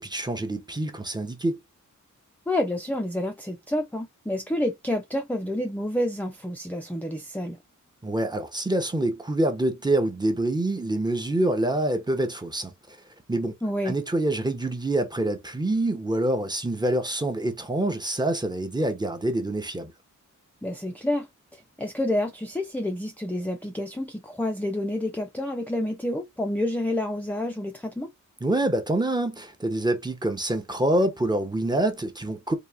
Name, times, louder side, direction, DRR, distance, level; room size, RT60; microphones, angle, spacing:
voice 1, 0.0-1.6 8.0-13.0 13.3-13.6 13.8-19.9 28.4-32.5, right 1 dB, 15° right, 0.9 m, -26 dB
voice 2, 2.5-7.6 13.6-13.9 20.6-21.3 21.5-28.1, left 1 dB, 5° left, 0.5 m, -29 dB
4.0 x 2.9 x 3.5 m
wide cardioid pair, 180°, 31 cm